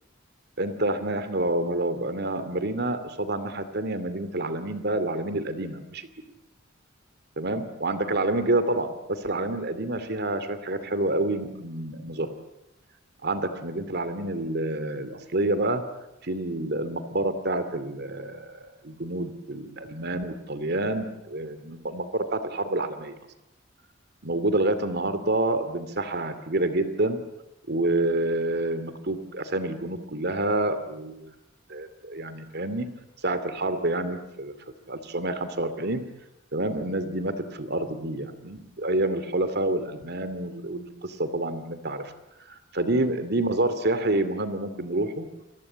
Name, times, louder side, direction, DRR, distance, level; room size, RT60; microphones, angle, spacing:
voice 1, 0.6-6.1 7.4-12.3 13.2-15.8 16.2-23.2 24.2-27.2 27.7-31.3 31.7-32.9 33.2-34.5 34.9-36.0 36.5-42.1 42.5-45.3, right 2 dB, 55° right, 11 dB, 2.5 m, -28 dB
29.0 x 23.5 x 8.7 m, 0.87 s
head